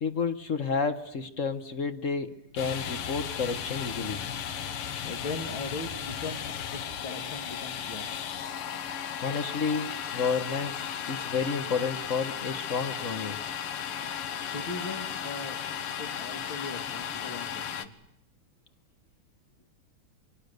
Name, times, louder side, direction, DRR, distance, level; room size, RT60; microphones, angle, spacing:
voice 1, 0.0-4.2 9.2-10.8 11.1-13.4, left 5 dB, 40° left, 10 dB, 1.3 m, -31 dB
Domestic sounds home sounds, 2.6-17.9, left 8 dB, 80° left, 2.1 m, -35 dB
voice 2, 5.0-8.3 14.4-17.9, left 3 dB, 60° left, 6 dB, 3.0 m, -39 dB
29.5 x 24.5 x 6.7 m, 0.83 s
omnidirectional pair, 2.4 m